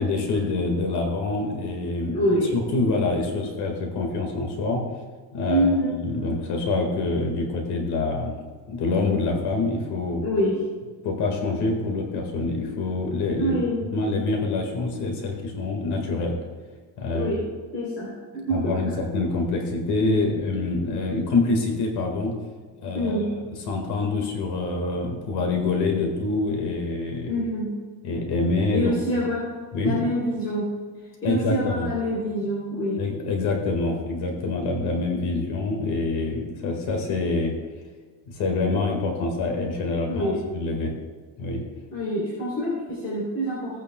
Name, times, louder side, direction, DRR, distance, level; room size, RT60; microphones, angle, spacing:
voice 1, 0.0-2.2 2.5-4.8 5.3-5.7 6.0-8.4 8.7-10.2 11.0-13.6 13.9-16.4 17.0-17.3 18.5-22.3 22.8-23.2 23.7-27.3 28.0-29.2 29.7-30.0 31.2-31.9 33.0-37.5 38.3-40.9 41.4-41.6, left 3 dB, 55° left, 1 dB, 1.8 m, -26 dB
voice 2, 2.1-2.6 5.5-6.0 10.2-10.6 13.4-13.8 17.1-17.4 17.7-19.0 22.9-23.3 27.3-27.7 28.7-29.5 29.8-30.7 31.2-33.1 40.1-40.4 41.9-43.8, equal, 30° left, -7 dB, 3.2 m, -26 dB
17.0 x 8.9 x 2.2 m, 1.4 s
cardioid pair, 160°, 47 cm